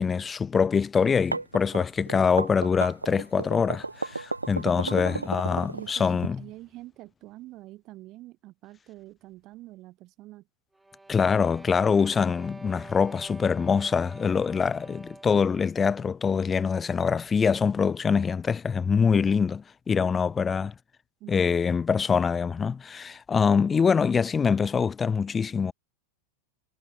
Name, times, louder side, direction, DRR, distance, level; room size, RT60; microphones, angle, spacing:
voice 1, 0.0-6.4 11.1-20.7 21.3-25.7, left 6 dB, 15° left, 1.6 m, -24 dB
sound 1, 1.0-6.3, right 2 dB, 80° right, 1.1 m, -33 dB
voice 2, 4.6-5.3 5.7-10.4 21.2-21.6, right 17 dB, 35° right, 4.5 m, -45 dB
sound 2, 10.7-15.5, right 2 dB, 5° right, 3.4 m, -46 dB
figure-of-eight pair, 90°, 0 cm